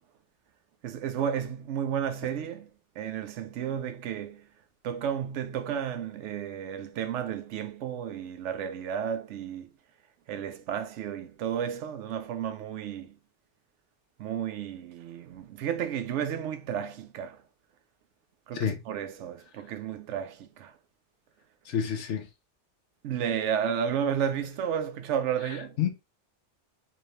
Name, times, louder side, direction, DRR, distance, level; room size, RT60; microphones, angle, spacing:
voice 1, 0.8-2.7 3.0-4.4 4.8-9.6 10.3-13.1 14.2-17.4 18.5-20.7 23.0-25.7, right 8 dB, 85° right, 0.9 m, -32 dB
voice 2, 21.7-22.3 25.5-25.9, left 8 dB, 90° left, 1.1 m, -29 dB
4.2 x 2.7 x 3.1 m
omnidirectional pair, 1.2 m